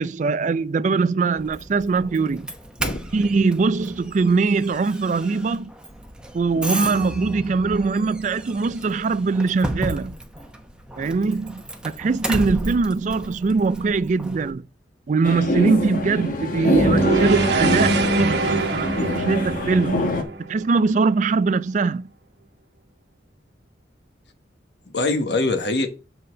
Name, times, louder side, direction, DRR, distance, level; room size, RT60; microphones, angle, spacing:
voice 1, 0.0-2.5 3.1-5.7 6.3-10.2 11.0-14.6 15.1-22.1, right 4 dB, 40° right, 0.3 m, -22 dB
Doorbell, 1.4-14.5, right 1 dB, 5° right, 0.9 m, -34 dB
voice 2, 6.6-7.3 24.9-25.9, left 2 dB, 70° left, 1.3 m, -25 dB
sound 1, 15.2-20.2, left 1 dB, 50° left, 1.3 m, -24 dB
sound 2, 16.7-21.0, right 3 dB, 70° right, 1.1 m, -23 dB
7.5 x 4.1 x 6.5 m
head